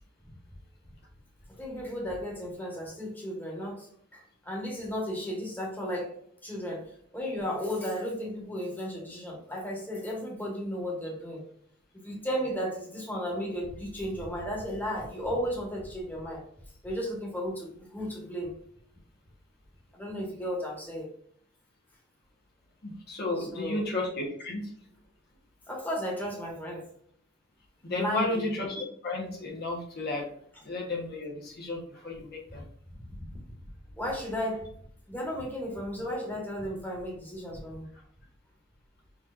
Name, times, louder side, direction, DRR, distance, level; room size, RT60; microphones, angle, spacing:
voice 1, 1.6-6.1 6.4-6.9 7.1-11.4 12.0-16.4 16.8-18.5 19.9-21.1 23.4-23.8 25.7-26.8 28.0-28.5 33.2-33.4 34.0-34.7 35.1-37.9, equal, 10° left, -2 dB, 1.4 m, -34 dB
voice 2, 22.8-24.7 27.8-30.3 30.6-32.6, left 2 dB, 55° left, -2 dB, 1.2 m, -33 dB
6.3 x 3.0 x 2.5 m, 0.64 s
head